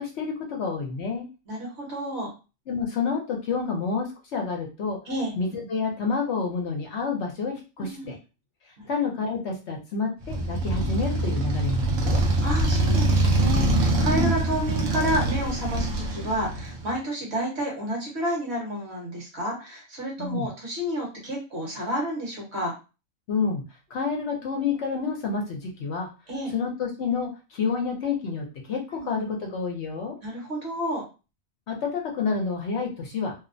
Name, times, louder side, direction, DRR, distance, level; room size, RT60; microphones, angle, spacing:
voice 1, 0.0-1.3 2.7-5.0 5.4-8.2 8.8-12.2 20.2-20.5 23.3-23.6 23.9-26.1 26.5-30.2 31.7-33.3, left 5 dB, 65° left, 1 dB, 0.8 m, -29 dB
voice 2, 1.5-2.3 5.1-5.3 7.8-8.2 12.4-22.7 26.3-26.5 28.9-29.1 30.2-31.0, equal, 55° right, -1 dB, 1.2 m, -30 dB
Motorcycle, 10.2-16.9, right 2 dB, 70° right, 0.9 m, -24 dB
2.7 x 2.0 x 2.5 m, 0.31 s
omnidirectional pair, 1.4 m